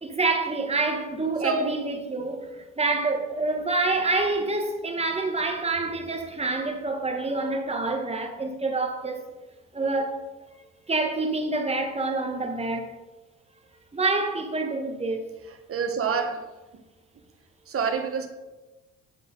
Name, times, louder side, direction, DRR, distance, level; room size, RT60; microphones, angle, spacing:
voice 1, 0.0-9.2 9.7-10.2 10.9-12.9 13.9-15.3, right 3 dB, 20° right, 1.4 m, -27 dB
voice 2, 1.4-1.8 15.7-16.4 16.7-16.8 17.7-18.3, right 5 dB, 45° right, 1.3 m, -27 dB
8.4 x 5.0 x 5.3 m
cardioid pair, 90°, 30 cm